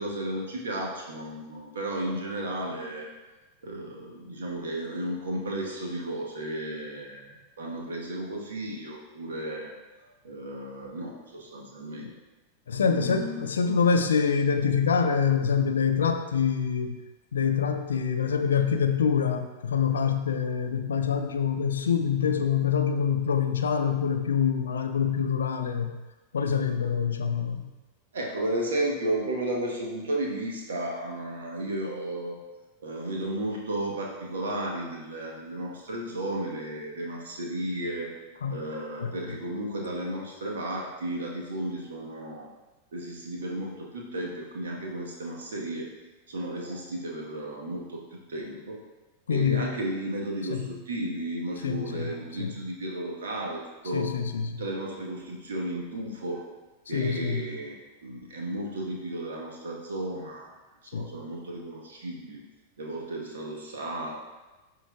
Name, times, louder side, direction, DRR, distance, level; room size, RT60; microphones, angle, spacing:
voice 1, 0.0-3.1 3.6-9.7 10.2-12.1 12.8-13.4 28.1-32.4 32.8-38.1 38.5-42.5 42.9-45.9 46.3-48.0 48.3-48.8 49.3-54.1 54.5-56.4 56.9-57.7 58.0-60.5 60.9-62.4 62.8-64.1, right 1 dB, 65° right, -1 dB, 1.2 m, -33 dB
voice 2, 12.7-17.0 17.3-25.9 26.3-27.7 38.4-38.6 39.0-39.4 49.3-49.7 50.5-50.6 51.6-52.6 53.9-54.6 56.9-57.5 60.9-61.1, left 6 dB, 70° left, 6 dB, 0.5 m, -26 dB
11.5 x 3.8 x 2.3 m, 1.1 s
figure-of-eight pair, 90°, 0 cm